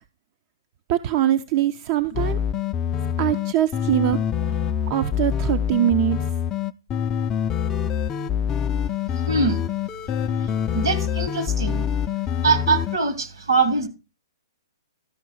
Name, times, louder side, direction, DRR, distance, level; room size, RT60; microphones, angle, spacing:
voice 1, 0.9-2.4 3.2-4.2 4.5-4.6 4.9-6.2, right 12 dB, 40° right, 0.5 m, -22 dB
sound 1, 2.1-13.0, left 9 dB, 20° left, 0.4 m, -25 dB
voice 2, 9.3-9.6 10.7-11.9 12.4-13.9, right 4 dB, 75° right, 2.2 m, -22 dB
13.0 x 5.4 x 4.6 m
hypercardioid pair, 130°, 2 cm